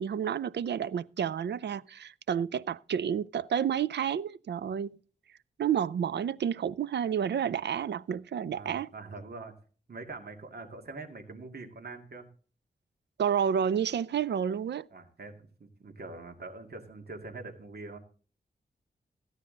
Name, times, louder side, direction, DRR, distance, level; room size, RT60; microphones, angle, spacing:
voice 1, 0.0-5.0 5.6-8.9 13.2-14.9, right 8 dB, 85° right, 0.4 m, -30 dB
voice 2, 8.5-9.5 9.9-12.3 14.9-18.0, right 3 dB, 65° right, 2.2 m, -44 dB
15.0 x 9.6 x 3.9 m
wide cardioid pair, 95°, 17 cm